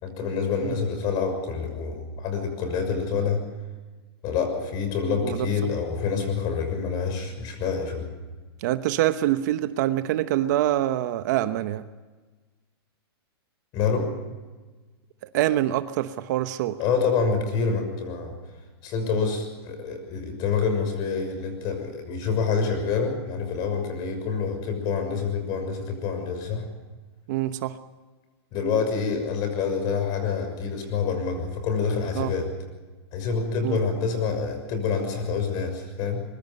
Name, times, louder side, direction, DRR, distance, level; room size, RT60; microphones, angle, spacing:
voice 1, 0.0-3.4 4.2-8.1 13.7-14.1 16.8-18.4 18.8-26.7 28.5-32.5 33.1-36.2, left 5 dB, 30° left, 7 dB, 6.4 m, -27 dB
voice 2, 8.6-11.8 15.3-16.8 27.3-27.8 32.2-32.3 33.6-33.8, right 13 dB, 45° right, 11 dB, 1.0 m, -25 dB
24.0 x 23.0 x 5.4 m, 1.3 s
hypercardioid pair, 160°, 13 cm